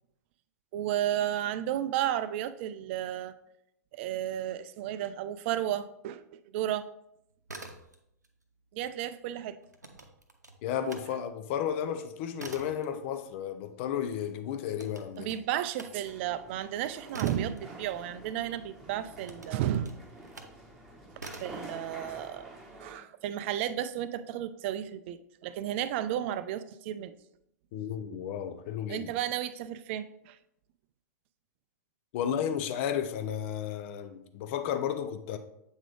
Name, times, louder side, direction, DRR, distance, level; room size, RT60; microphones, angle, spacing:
voice 1, 0.7-3.3 3.9-6.9 8.7-9.6 15.2-20.0 21.4-22.5 22.8-27.2 28.9-30.4, right 11 dB, 45° right, 0.4 m, -33 dB
sound 1, 7.3-8.3 8.6-11.1 11.5-18.5 19.1-20.6 21.2-21.7, right 2 dB, 85° right, 0.7 m, -47 dB
voice 2, 10.6-15.3 27.7-29.1 32.1-35.4, left 9 dB, 45° left, 0.6 m, -33 dB
sound 2, 16.0-23.0, right 1 dB, 5° right, 1.4 m, -48 dB
8.0 x 3.7 x 3.3 m
figure-of-eight pair, 95°, 9 cm